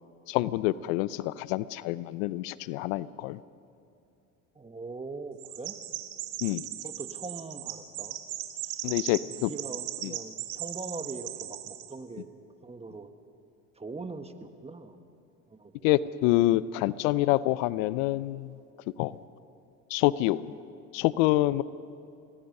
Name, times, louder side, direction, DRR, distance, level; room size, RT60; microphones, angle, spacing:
voice 1, 0.3-3.4 6.4-6.6 8.8-9.5 10.0-10.1 15.8-18.5 19.0-19.1 19.9-20.5 20.9-21.6, left 16 dB, 70° left, 18 dB, 0.7 m, -26 dB
voice 2, 4.5-5.7 6.8-8.2 8.6-8.7 9.1-12.3 12.6-13.1 13.8-15.0 15.5-15.9, right 3 dB, 15° right, 8 dB, 1.6 m, -41 dB
Chirp tweet, 5.4-11.9, right 14 dB, 70° right, 1.9 m, -38 dB
27.0 x 19.5 x 5.5 m, 2.6 s
hypercardioid pair, 80°, 41 cm